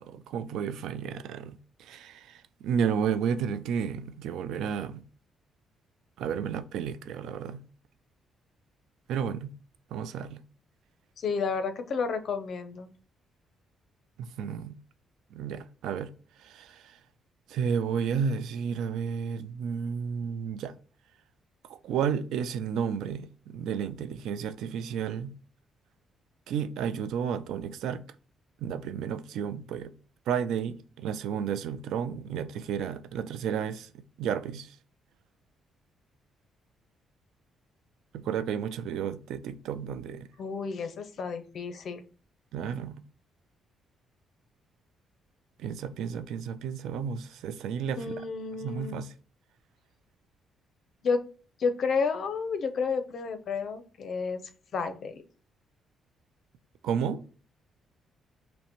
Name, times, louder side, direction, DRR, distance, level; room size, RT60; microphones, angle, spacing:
voice 1, 0.0-5.0 6.2-7.6 9.1-9.5 9.9-10.4 14.2-14.8 15.3-16.1 16.4-17.0 17.5-20.7 21.7-25.4 26.5-28.0 28.6-29.9 30.3-34.8 38.1-40.3 42.5-43.0 45.6-48.2 48.6-49.1 56.8-57.2, right 7 dB, 85° right, 0.4 m, -32 dB
voice 2, 11.2-12.9 40.4-42.0 48.0-49.0 51.0-51.2 51.6-54.4 54.7-55.1, left 5 dB, 60° left, 0.6 m, -31 dB
5.6 x 2.1 x 3.0 m
cardioid pair, 90°, 0 cm